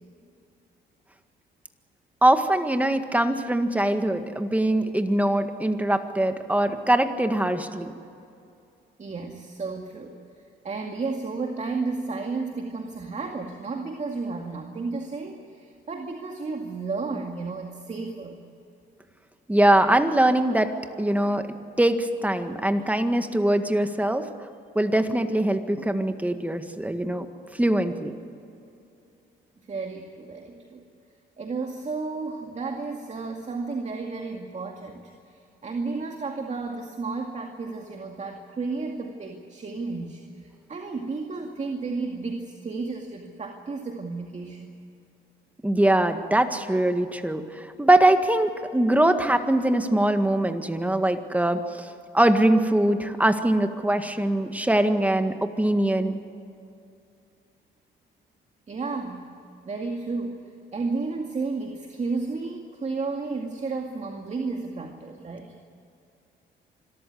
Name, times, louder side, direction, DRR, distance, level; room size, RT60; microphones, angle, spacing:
voice 1, 2.2-7.9 19.5-20.7 21.0-21.4 21.8-24.3 24.8-27.3 27.5-28.1 45.6-51.9 52.1-56.2, right 1 dB, 5° right, 7 dB, 1.8 m, -22 dB
voice 2, 9.0-10.1 10.6-18.4 29.7-30.9 31.4-44.7 58.7-59.3 59.7-60.4 60.7-65.5, right 4 dB, 35° right, 2 dB, 2.2 m, -32 dB
25.5 x 14.0 x 9.5 m, 2.6 s
cardioid pair, 90°, 20 cm